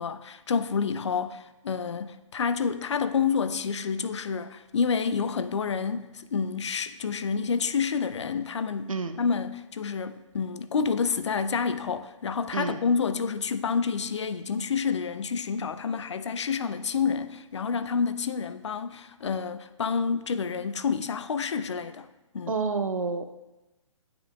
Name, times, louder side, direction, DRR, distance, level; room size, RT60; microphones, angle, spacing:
voice 1, 0.0-22.1 22.3-22.6, left 6 dB, 60° left, 0.4 m, -29 dB
voice 2, 8.9-9.2 12.5-12.8 22.5-23.2, right 4 dB, 80° right, 0.6 m, -29 dB
9.0 x 5.1 x 2.3 m
figure-of-eight pair, 135°, 17 cm